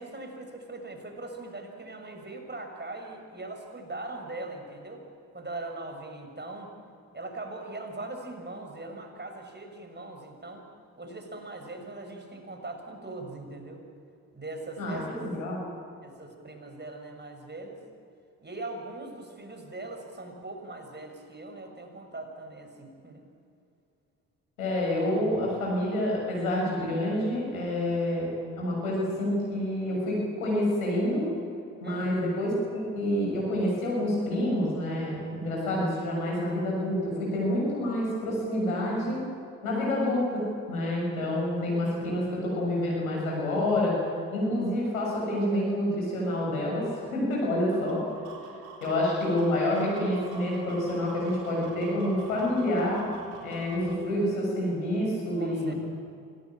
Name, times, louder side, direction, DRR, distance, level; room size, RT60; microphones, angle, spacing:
voice 1, 0.0-5.0 5.3-6.7 7.1-10.7 11.0-13.8 14.3-15.2 16.0-17.8 18.4-23.3 31.8-32.1 55.4-55.7, right 2 dB, 25° right, 3 dB, 6.5 m, -40 dB
voice 2, 14.8-15.6 24.6-28.3 28.5-31.3 31.8-39.2 39.6-43.9 44.3-48.0 48.8-53.0 53.4-55.7, left 1 dB, 90° left, -3 dB, 6.7 m, -28 dB
sound 1, 47.5-54.0, right 5 dB, 75° right, 4.1 m, -47 dB
26.0 x 18.0 x 8.9 m, 2.5 s
hypercardioid pair, 45°, 41 cm